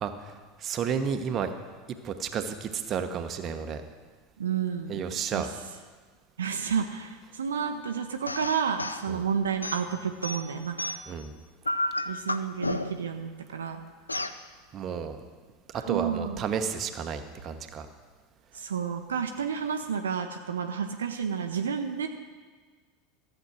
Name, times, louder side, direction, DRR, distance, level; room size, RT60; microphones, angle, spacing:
voice 1, 0.0-1.5 2.0-3.8 4.9-5.5 9.1-9.3 11.1-11.3 14.7-15.2 15.7-17.9, right 7 dB, 35° right, 7 dB, 1.0 m, -32 dB
voice 2, 4.4-5.0 5.3-5.4 6.4-10.8 12.1-13.8 15.7-16.5 18.5-22.1, right 7 dB, 70° right, 5 dB, 0.7 m, -31 dB
sound 1, 8.3-9.1 9.6-11.2 11.6-13.1 14.1-14.4, left 1 dB, 85° left, 0.4 m, -32 dB
14.0 x 8.0 x 6.1 m, 1.5 s
figure-of-eight pair, 80°, 0 cm